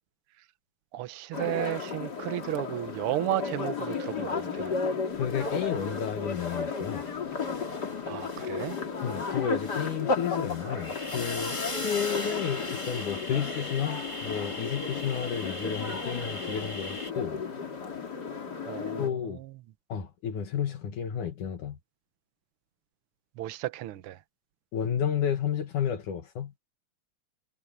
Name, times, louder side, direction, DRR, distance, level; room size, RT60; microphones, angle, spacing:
voice 1, 0.9-4.8 8.0-8.8 18.6-19.5 23.4-24.2, right 14 dB, 85° right, 1.2 m, -34 dB
sound 1, 1.3-19.1, left 5 dB, 35° left, 2.7 m, -34 dB
voice 2, 5.1-7.0 9.0-17.4 19.0-19.4 19.9-21.8 24.7-26.5, left 8 dB, 75° left, 3.2 m, -31 dB
sound 2, 5.2-7.1 7.3-17.1, left 2 dB, 10° left, 2.1 m, -39 dB
omnidirectional pair, 3.5 m